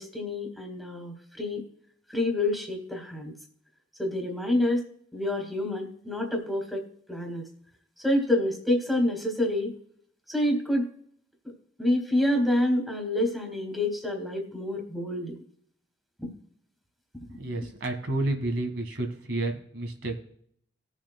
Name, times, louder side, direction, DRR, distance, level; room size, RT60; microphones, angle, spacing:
voice 1, 0.0-1.6 2.1-3.3 4.0-4.8 5.1-7.4 8.0-9.7 10.3-10.9 11.8-15.3 16.2-16.3, left 1 dB, ahead, 2 dB, 1.8 m, -27 dB
voice 2, 17.4-20.2, right 2 dB, 80° right, 5 dB, 1.6 m, -30 dB
19.5 x 7.3 x 2.2 m, 0.64 s
head